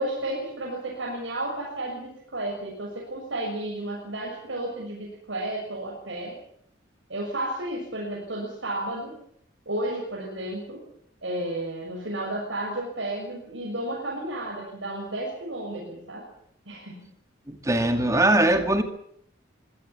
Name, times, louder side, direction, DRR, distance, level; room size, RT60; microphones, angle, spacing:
voice 1, 0.0-6.4 7.1-9.2 9.7-10.8 11.2-16.2 16.7-17.0, right 1 dB, 85° right, -3 dB, 7.1 m, -32 dB
voice 2, 17.5-18.8, right 1 dB, 15° right, 7 dB, 2.1 m, -21 dB
24.0 x 17.0 x 7.4 m, 0.68 s
head